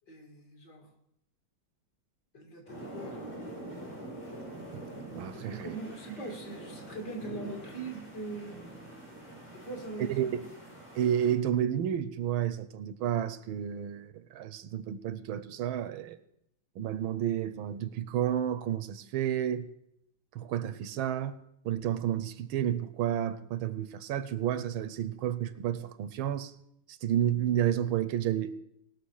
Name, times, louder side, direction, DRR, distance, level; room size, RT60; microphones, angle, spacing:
voice 1, 0.1-0.9 2.3-3.3 5.3-8.6 9.5-10.1, right 2 dB, 50° left, 3.1 m, -41 dB
sound 1, 2.7-11.3, right 1 dB, 85° left, 7.0 m, -45 dB
voice 2, 5.1-5.8 10.0-10.4 10.9-16.2 16.8-19.7 20.3-21.4 21.6-26.5 27.0-28.5, right 10 dB, 75° right, 1.5 m, -31 dB
19.0 x 6.5 x 6.5 m
omnidirectional pair, 2.3 m